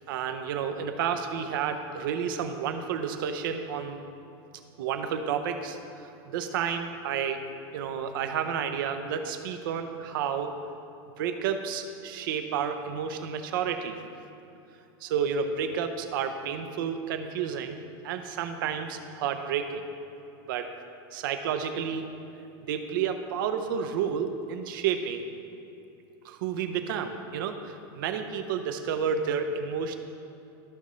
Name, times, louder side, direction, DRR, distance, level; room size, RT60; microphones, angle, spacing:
voice 1, 0.1-4.0 4.8-7.4 7.7-10.6 11.2-14.0 15.0-19.8 20.5-20.7 21.1-22.0 22.4-25.3 26.2-30.0, right 7 dB, 60° right, 7 dB, 0.7 m, -31 dB
13.5 x 5.4 x 3.1 m, 2.8 s
supercardioid pair, 175°, 13 cm